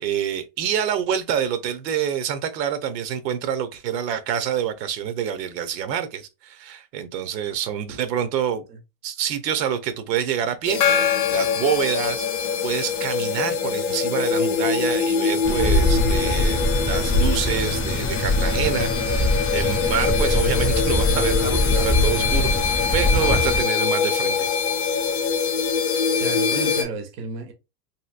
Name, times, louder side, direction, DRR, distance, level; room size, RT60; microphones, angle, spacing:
voice 1, 0.0-8.6 9.0-10.8 11.3-12.3 12.6-19.3 19.5-24.5, right 8 dB, 85° right, 0.8 m, -27 dB
sound 1, 10.6-26.8, left 6 dB, 45° left, 0.6 m, -24 dB
Gong, 10.8-12.8, left 8 dB, 75° left, 0.8 m, -25 dB
sound 2, 15.4-23.6, left 1 dB, 10° left, 0.9 m, -22 dB
voice 2, 26.2-27.5, right 4 dB, 35° right, 0.7 m, -32 dB
2.9 x 2.7 x 2.4 m
supercardioid pair, 155°, 49 cm